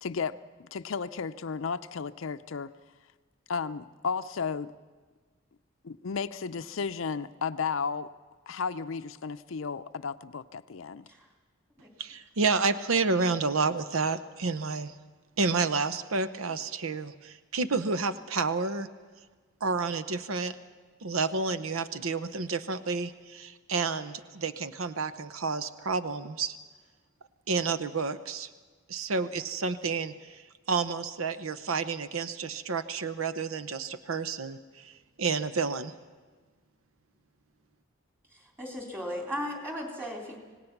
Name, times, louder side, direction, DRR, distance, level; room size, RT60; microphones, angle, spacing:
voice 1, 0.0-2.7 3.5-4.7 5.8-8.1 8.5-11.1, left 5 dB, 70° left, 11 dB, 0.5 m, -34 dB
voice 2, 12.0-14.9 15.4-18.9 19.6-20.5 21.0-26.5 27.5-28.5 28.9-30.4 30.7-34.9 35.2-35.9, right 4 dB, 85° right, 12 dB, 0.8 m, -30 dB
voice 3, 38.3-40.4, equal, 10° right, 1 dB, 3.2 m, -36 dB
26.0 x 18.0 x 5.9 m, 1.4 s
head